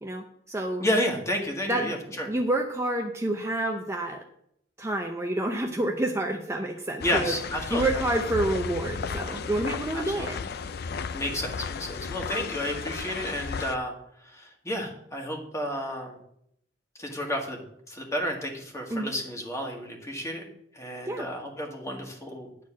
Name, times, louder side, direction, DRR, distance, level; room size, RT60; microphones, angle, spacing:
voice 1, 0.0-0.8 1.7-2.0 2.2-4.2 4.8-7.3 7.7-10.4 18.9-19.1 21.1-21.3, right 1 dB, 15° right, 2 dB, 0.6 m, -28 dB
voice 2, 0.8-2.3 7.0-8.0 9.9-10.4 11.1-13.9 14.2-16.2 17.0-20.4 20.7-22.5, equal, 15° left, 1 dB, 1.8 m, -31 dB
sound 1, 7.0-13.7, left 5 dB, 60° left, 0.4 m, -34 dB
10.0 x 4.3 x 7.3 m, 0.72 s
head